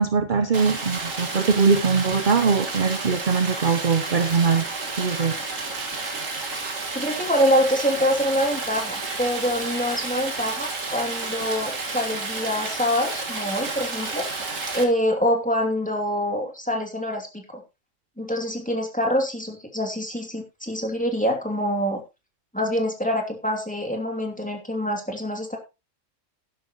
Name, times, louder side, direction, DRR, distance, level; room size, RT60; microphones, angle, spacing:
voice 1, 0.0-4.7 5.0-5.4, right 5 dB, 45° right, 9 dB, 1.0 m, -21 dB
Stream, 0.5-14.8, right 3 dB, 85° right, 2.4 m, -31 dB
voice 2, 6.9-14.3 14.7-17.6 18.2-22.0 22.5-25.6, equal, 5° left, 2 dB, 2.6 m, -25 dB
11.5 x 11.5 x 3.0 m, 0.26 s
omnidirectional pair, 1.3 m